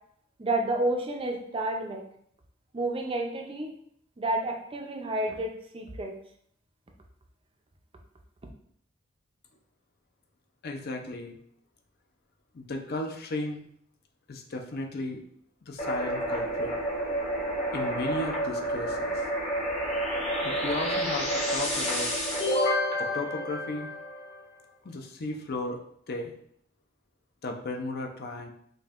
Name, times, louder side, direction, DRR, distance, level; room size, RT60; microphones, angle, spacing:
voice 1, 0.4-2.0 2.7-3.7 4.2-6.1, right 1 dB, 25° right, 2 dB, 0.5 m, -30 dB
voice 2, 10.6-11.4 12.5-13.6 14.3-15.2 15.6-16.8 17.7-19.1 20.4-22.1 23.0-23.9 24.8-26.3 27.4-28.5, left 2 dB, 50° left, 3 dB, 0.5 m, -35 dB
sound 1, 15.8-24.4, equal, 30° left, 0.9 m, -29 dB
5.2 x 2.6 x 2.4 m, 0.67 s
head